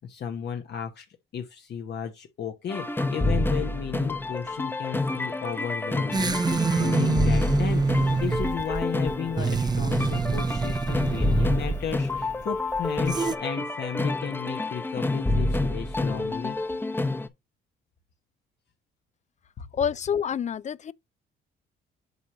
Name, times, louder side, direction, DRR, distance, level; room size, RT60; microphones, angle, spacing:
voice 1, 0.0-1.0 1.3-7.8 8.1-16.6, left 8 dB, 60° left, 1.0 m, -34 dB
sound 1, 2.7-17.3, left 2 dB, 10° left, 0.8 m, -28 dB
sound 2, 6.1-13.4, right 4 dB, 20° right, 0.6 m, -26 dB
voice 2, 19.7-20.9, left 8 dB, 35° left, 0.4 m, -27 dB
8.1 x 2.9 x 6.1 m
cardioid pair, 90°, 20 cm